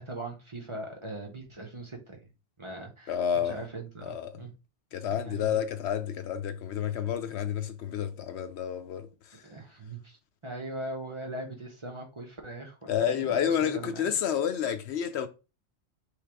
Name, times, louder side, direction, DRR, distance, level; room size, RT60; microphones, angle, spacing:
voice 1, 0.0-2.2 2.6-4.5 5.1-5.6 9.4-10.2 10.4-14.2, right 2 dB, 30° right, 0.8 m, -40 dB
voice 2, 3.1-3.6 4.0-4.3 4.9-9.4 12.9-15.3, left 9 dB, 70° left, 0.9 m, -30 dB
3.4 x 3.2 x 4.6 m
omnidirectional pair, 1.2 m